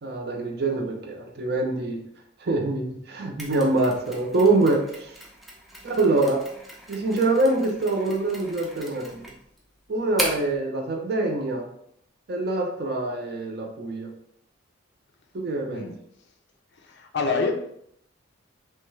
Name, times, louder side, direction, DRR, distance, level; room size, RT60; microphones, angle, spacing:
voice 1, 0.0-2.0 2.4-5.1 5.8-6.5 6.9-9.3 9.9-11.7 12.3-14.1 15.3-15.9, right 2 dB, 50° right, 2 dB, 0.5 m, -25 dB
Mechanisms, 3.4-10.6, equal, ahead, 0.4 m, -38 dB
voice 2, 16.8-17.5, left 4 dB, 60° left, 4 dB, 0.4 m, -27 dB
3.1 x 2.2 x 3.1 m, 0.71 s
head